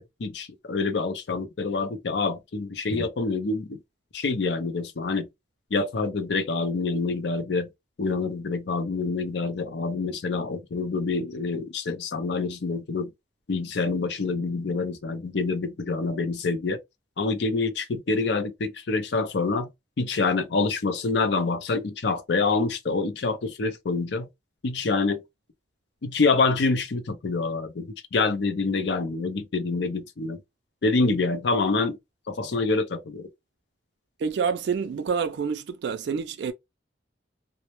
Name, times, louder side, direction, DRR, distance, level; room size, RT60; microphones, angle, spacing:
voice 1, 0.0-3.8 4.1-5.3 5.7-7.7 8.0-13.1 13.5-16.8 17.2-19.7 20.0-24.3 24.6-25.2 26.0-30.4 30.8-32.0 32.3-33.3, left 3 dB, 65° left, 0.5 m, -26 dB
voice 2, 34.2-36.5, right 6 dB, 65° right, 0.3 m, -27 dB
2.1 x 2.0 x 2.9 m
head